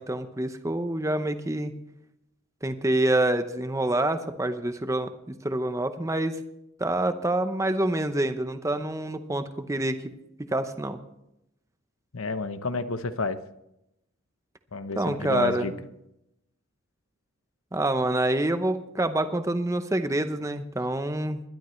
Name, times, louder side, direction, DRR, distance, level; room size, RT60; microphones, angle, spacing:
voice 1, 0.0-1.7 2.6-6.4 6.8-10.0 10.5-11.0 15.0-15.7 17.7-21.4, right 1 dB, 15° right, 9 dB, 0.8 m, -27 dB
voice 2, 12.1-13.4 14.7-15.7, left 3 dB, 85° left, 11 dB, 0.9 m, -30 dB
20.5 x 12.0 x 3.2 m, 0.83 s
head